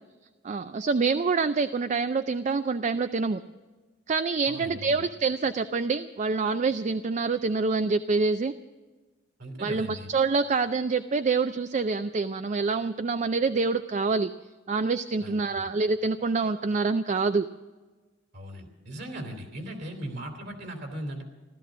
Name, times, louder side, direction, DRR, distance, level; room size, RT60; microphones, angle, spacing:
voice 1, 0.4-3.4 4.1-8.5 9.6-14.3 14.7-17.5, right 4 dB, 40° right, 11 dB, 0.4 m, -26 dB
voice 2, 4.5-5.0 9.4-10.1 15.2-15.7 18.3-21.2, right 1 dB, 60° right, 4 dB, 2.9 m, -38 dB
16.0 x 13.0 x 6.2 m, 1.3 s
head